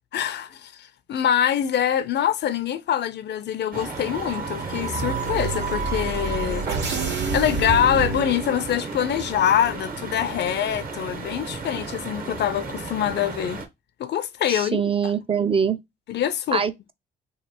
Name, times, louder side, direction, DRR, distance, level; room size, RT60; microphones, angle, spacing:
voice 1, 0.1-6.7 7.3-13.6 14.0-14.8 16.1-16.6, left 9 dB, 60° left, 0.5 m, -24 dB
sound 1, 3.7-13.7, right 3 dB, 45° right, 0.9 m, -35 dB
sound 2, 3.7-8.8, right 4 dB, 65° right, 1.4 m, -29 dB
Guitar, 6.9-10.2, right 6 dB, 80° right, 0.9 m, -35 dB
voice 2, 14.5-15.8 16.5-16.9, right 6 dB, 30° right, 0.4 m, -24 dB
3.2 x 2.3 x 4.3 m
cardioid pair, 90°, 20 cm